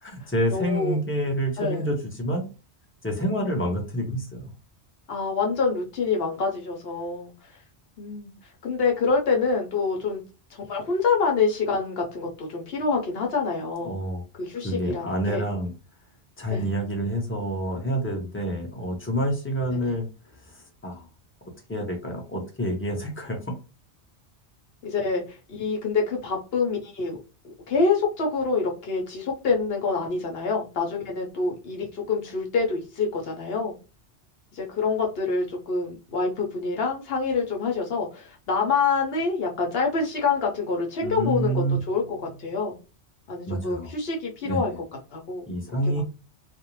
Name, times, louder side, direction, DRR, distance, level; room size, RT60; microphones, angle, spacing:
voice 1, 0.0-2.5 3.0-4.5 13.8-14.2 14.6-15.7 16.4-20.1 20.3-21.1 21.7-23.5 41.0-41.8 43.5-43.9 44.4-44.8 45.5-46.0, right 1 dB, 15° left, 1 dB, 0.4 m, -28 dB
voice 2, 0.5-1.0 1.6-1.9 5.1-7.3 8.0-8.3 8.6-10.2 10.5-14.0 14.4-15.5 16.5-16.7 24.8-27.2 27.4-33.8 34.5-42.8 43.3-44.7 45.1-45.5 45.9-46.0, left 4 dB, 60° left, 0 dB, 0.9 m, -26 dB
2.5 x 2.0 x 2.9 m, 0.31 s
omnidirectional pair, 1.2 m